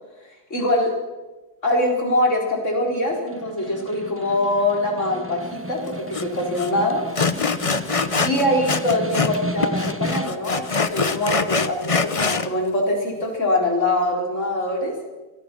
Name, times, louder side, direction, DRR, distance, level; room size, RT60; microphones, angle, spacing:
voice 1, 0.5-0.9 1.6-7.0 8.2-14.9, left 1 dB, 50° left, 0 dB, 4.9 m, -23 dB
Snare drum, 3.1-10.6, right 1 dB, 10° right, 1.0 m, -33 dB
Sawing, 6.1-6.2 6.6-6.7 7.2-9.4 9.6-12.5, left 4 dB, 30° left, 0.7 m, -23 dB
26.0 x 17.5 x 6.2 m, 1.2 s
omnidirectional pair, 1.6 m